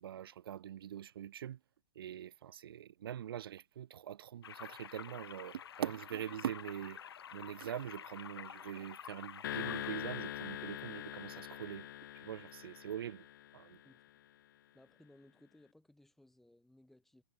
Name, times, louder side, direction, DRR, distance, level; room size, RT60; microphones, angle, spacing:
voice 1, 0.0-1.6 2.0-7.0 7.3-11.9 12.1-13.3 13.5-13.8, right 10 dB, 70° right, 0.7 m, -43 dB
sound 1, 4.4-9.9, left 9 dB, 80° left, 1.4 m, -50 dB
sound 2, 9.4-13.9, left 12 dB, 55° left, 1.0 m, -43 dB
voice 2, 14.7-17.2, left 1 dB, ahead, 6.0 m, -63 dB
hypercardioid pair, 160°, 13 cm